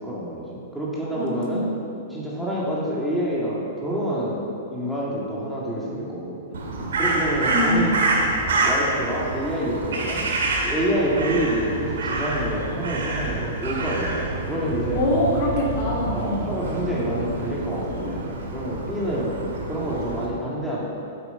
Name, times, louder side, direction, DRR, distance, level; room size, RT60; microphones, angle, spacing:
voice 1, 0.0-1.7 2.1-6.4 7.0-8.0 8.6-10.3 10.6-15.0 16.1-19.3 19.7-20.8, equal, ahead, -7 dB, 2.3 m, -27 dB
voice 2, 1.2-1.7 7.5-8.0 14.9-16.5, left 1 dB, 50° left, -3 dB, 2.4 m, -24 dB
Crow, 6.5-20.3, right 2 dB, 80° right, 1.9 m, -27 dB
8.7 x 8.0 x 5.7 m, 2.7 s
hypercardioid pair, 125°, 0 cm